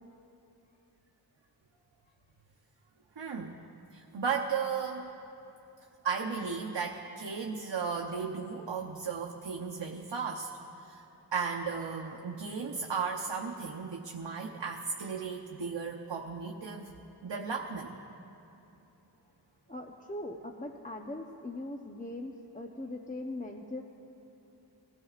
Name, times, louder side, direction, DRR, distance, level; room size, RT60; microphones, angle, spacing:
voice 1, 3.2-3.6 3.9-5.1 6.0-10.5 10.8-11.0 11.3-16.9 17.2-17.9, right 5 dB, 85° right, 1 dB, 0.8 m, -35 dB
voice 2, 19.7-23.8, left 1 dB, 20° left, 3 dB, 0.8 m, -40 dB
23.0 x 15.0 x 2.4 m, 2.9 s
wide cardioid pair, 45°, 42 cm